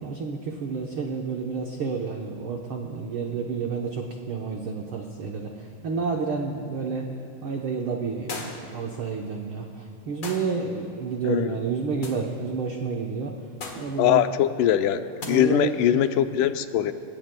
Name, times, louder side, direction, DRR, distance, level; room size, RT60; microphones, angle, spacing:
voice 1, 0.0-7.1 7.4-13.3 13.7-14.2 15.3-15.7, right 5 dB, 85° right, 1 dB, 1.1 m, -30 dB
sound 1, 8.3-8.8 10.2-10.6 12.0-12.3 13.6-13.9 15.2-15.3, left 3 dB, 40° left, 2.0 m, -36 dB
voice 2, 11.2-11.6 14.0-16.9, left 11 dB, 80° left, 9 dB, 2.1 m, -22 dB
25.0 x 19.5 x 2.2 m, 2.9 s
omnidirectional pair, 3.7 m